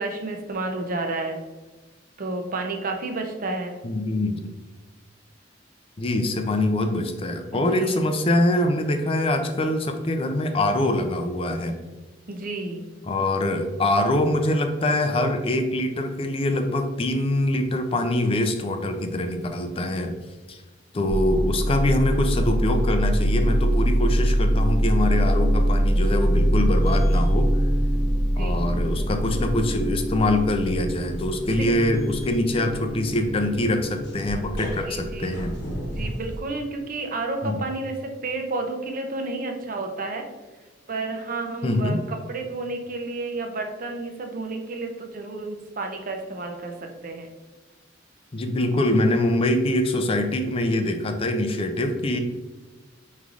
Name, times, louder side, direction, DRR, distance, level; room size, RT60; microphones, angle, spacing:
voice 1, 0.0-1.4 2.2-3.8 7.5-8.0 12.3-12.8 28.4-28.6 31.5-31.7 34.8-35.4 36.0-40.2 40.9-46.7 47.0-47.3, right 3 dB, 45° right, 4 dB, 0.6 m, -31 dB
voice 2, 3.8-4.4 6.0-11.7 13.0-20.2 20.5-20.6 20.9-27.5 28.4-35.5 37.4-37.7 41.6-42.0 48.3-52.2, left 1 dB, 30° left, 6 dB, 0.4 m, -24 dB
sound 1, 21.1-36.4, equal, 60° left, 1.0 m, -24 dB
5.1 x 3.1 x 2.4 m, 1.2 s
head